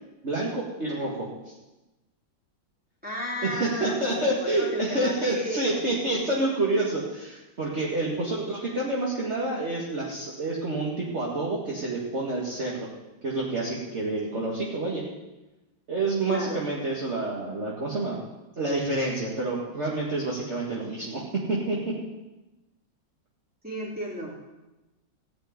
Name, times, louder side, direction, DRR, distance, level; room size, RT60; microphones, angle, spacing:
voice 1, 0.2-1.3 3.4-12.9 13.2-15.0 15.9-18.2 18.6-21.2 21.5-22.0, right 2 dB, 35° right, -5 dB, 2.0 m, -28 dB
voice 2, 3.0-5.8 8.0-8.7 16.3-16.6 23.6-24.4, equal, 5° right, -5 dB, 3.5 m, -34 dB
15.0 x 5.2 x 9.4 m, 1.0 s
omnidirectional pair, 2.1 m